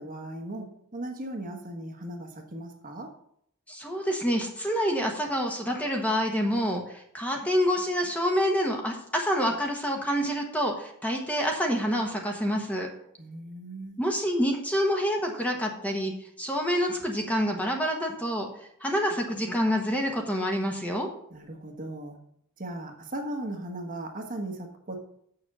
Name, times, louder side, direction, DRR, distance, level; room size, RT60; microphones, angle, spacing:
voice 1, 0.0-3.1 13.2-14.0 21.3-22.2 22.6-25.0, right 1 dB, 40° right, 3 dB, 1.3 m, -37 dB
voice 2, 3.7-12.9 14.0-16.1 16.4-18.5 18.8-21.1, equal, 5° left, 1 dB, 1.2 m, -27 dB
6.9 x 6.7 x 6.1 m, 0.70 s
head